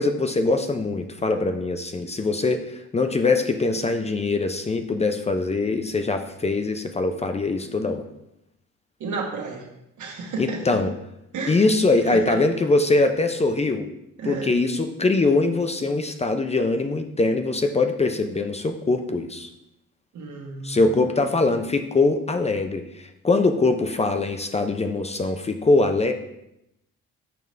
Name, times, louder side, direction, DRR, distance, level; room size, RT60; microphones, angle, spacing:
voice 1, 0.0-8.1 10.4-10.9 11.5-13.9 14.3-19.5 20.6-26.1, left 3 dB, 20° left, 7 dB, 0.5 m, -22 dB
voice 2, 9.0-9.7 10.0-10.8 11.3-11.6 12.1-12.4 14.2-14.5 20.1-20.9, right 3 dB, 75° right, 0 dB, 1.5 m, -32 dB
6.7 x 5.2 x 3.2 m, 0.84 s
cardioid pair, 90°, 30 cm